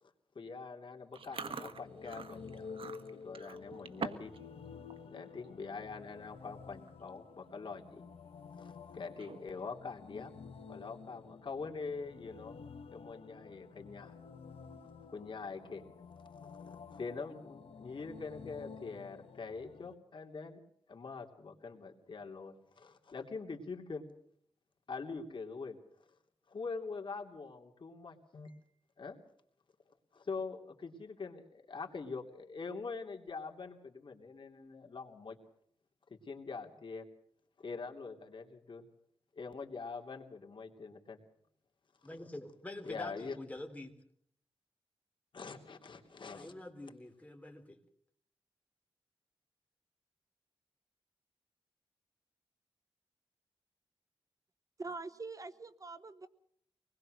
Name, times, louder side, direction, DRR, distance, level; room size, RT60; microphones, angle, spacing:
voice 1, 0.0-2.7 3.1-4.3 5.0-8.1 8.6-10.3 10.7-12.6 12.9-14.2 15.1-15.9 16.4-20.6 20.9-24.1 24.9-25.8 26.5-28.6 29.0-29.2 30.1-35.4 36.1-37.0 37.6-38.9 39.3-41.2 42.8-43.4 45.3-46.5, left 4 dB, 55° left, 2 dB, 3.1 m, -44 dB
Chewing mastication, 1.1-4.4 4.7-5.0 5.4-5.7 6.4-6.5 6.7-7.1 7.5-7.6 9.0-9.6, right 5 dB, 70° right, 1.6 m, -44 dB
sound 1, 1.2-19.9, left 5 dB, 80° left, 1.2 m, -51 dB
voice 2, 42.0-43.9 46.3-47.8, left 1 dB, 15° left, 4 dB, 3.8 m, -46 dB
voice 3, 54.8-56.3, right 3 dB, 35° right, 13 dB, 1.0 m, -44 dB
25.0 x 20.5 x 6.6 m, 0.66 s
wide cardioid pair, 100°, 10 cm